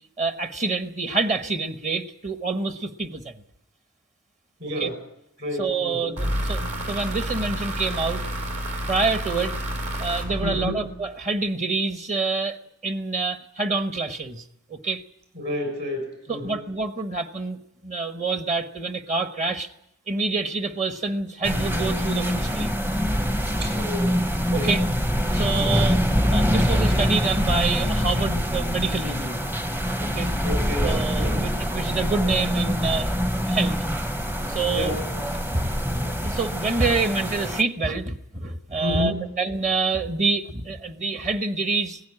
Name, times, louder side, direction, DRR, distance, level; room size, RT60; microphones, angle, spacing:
voice 1, 0.2-3.3 4.8-4.9 5.6-8.2 8.9-9.5 10.0-12.6 12.8-14.4 14.7-15.0 16.3-19.7 20.1-22.8 24.5-24.8 25.3-26.0 26.3-29.7 30.0-30.3 30.8-33.8 34.5-35.0 35.5-35.8 36.1-42.0, right 3 dB, 35° right, 8 dB, 1.1 m, -27 dB
voice 2, 4.6-5.0 5.4-6.1 10.4-10.9 15.3-16.6 23.6-24.2 24.5-24.8 25.5-25.8 30.4-31.4 34.7-35.0 38.8-39.2, left 1 dB, 50° right, 4 dB, 6.5 m, -30 dB
sound 1, 6.2-11.1, equal, 70° right, 4.8 m, -29 dB
sound 2, 21.4-37.6, equal, 10° right, 0.7 m, -24 dB
18.5 x 16.0 x 9.8 m, 0.82 s
head